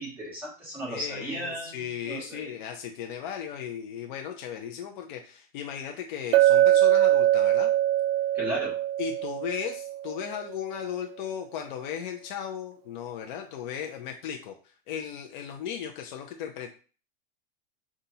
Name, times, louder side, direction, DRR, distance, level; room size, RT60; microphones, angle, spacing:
voice 1, 0.0-2.5 8.3-8.8, equal, 5° right, -7 dB, 1.8 m, -35 dB
voice 2, 0.9-7.7 9.0-16.7, left 8 dB, 55° left, 2 dB, 0.6 m, -36 dB
Chink clink, 6.3-10.3, right 13 dB, 70° right, 0.5 m, -22 dB
5.4 x 2.5 x 2.8 m, 0.37 s
supercardioid pair, 155°, 30 cm